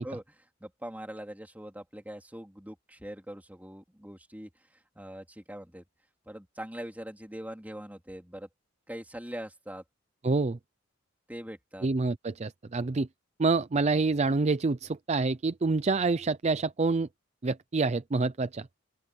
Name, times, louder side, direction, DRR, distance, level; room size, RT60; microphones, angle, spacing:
voice 1, 0.0-5.8 6.3-8.5 8.9-9.8 11.3-11.9, equal, 10° right, 3.6 m, -42 dB
voice 2, 10.2-10.6 11.8-13.1 13.4-17.1 17.4-18.7, right 3 dB, 35° right, 0.5 m, -27 dB
open air
head